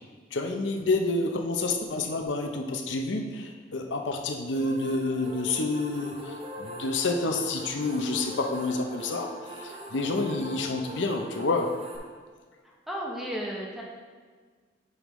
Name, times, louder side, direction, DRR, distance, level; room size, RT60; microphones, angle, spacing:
voice 1, 0.3-11.8, left 3 dB, 80° left, 3 dB, 0.7 m, -29 dB
sound 1, 4.5-12.0, left 1 dB, 30° right, 0.9 m, -41 dB
voice 2, 12.6-13.8, equal, ahead, -3 dB, 1.0 m, -34 dB
9.5 x 5.2 x 3.1 m, 1.5 s
head